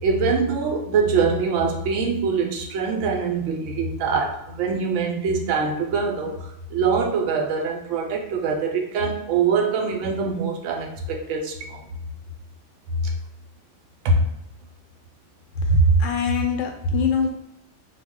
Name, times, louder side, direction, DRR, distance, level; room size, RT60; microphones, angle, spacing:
voice 1, 0.0-11.8 13.0-13.1 14.0-14.3, right 4 dB, 75° right, 1 dB, 0.9 m, -23 dB
voice 2, 15.7-17.4, equal, 85° left, 3 dB, 0.9 m, -20 dB
2.3 x 2.1 x 3.5 m, 0.80 s
omnidirectional pair, 1.3 m